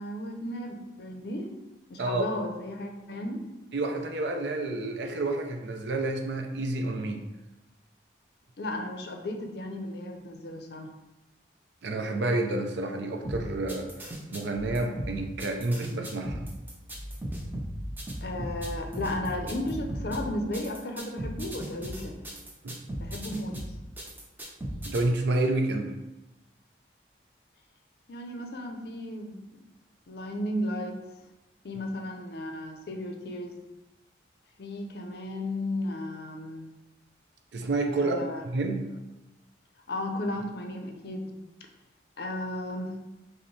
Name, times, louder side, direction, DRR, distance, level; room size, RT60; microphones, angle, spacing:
voice 1, 0.0-1.5 1.9-3.4 8.6-10.9 18.2-22.3 23.0-23.6 28.1-29.5 30.1-31.0 31.6-33.6 34.6-36.7 38.0-38.4 39.9-41.3 42.2-42.9, left 1 dB, 60° left, 3 dB, 0.5 m, -34 dB
voice 2, 3.7-7.2 11.8-16.5 22.6-22.8 24.8-25.9 37.5-38.2 38.5-38.9, right 2 dB, 70° right, 4 dB, 0.5 m, -29 dB
sound 1, 13.2-25.0, equal, 10° right, 0.4 m, -36 dB
5.1 x 2.1 x 3.1 m, 1.0 s
head